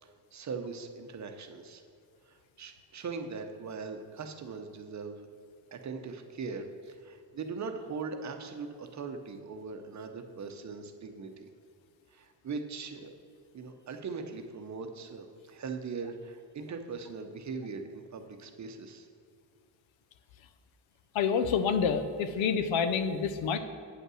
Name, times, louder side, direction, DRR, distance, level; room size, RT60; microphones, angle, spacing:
voice 1, 0.0-1.8 2.3-5.3 5.7-11.5 12.1-13.1 13.5-19.1, right 4 dB, 40° right, 6 dB, 0.7 m, -40 dB
voice 2, 21.1-23.6, left 6 dB, 85° left, 9 dB, 0.8 m, -28 dB
8.3 x 5.4 x 6.2 m, 2.2 s
cardioid pair, 140°, 45 cm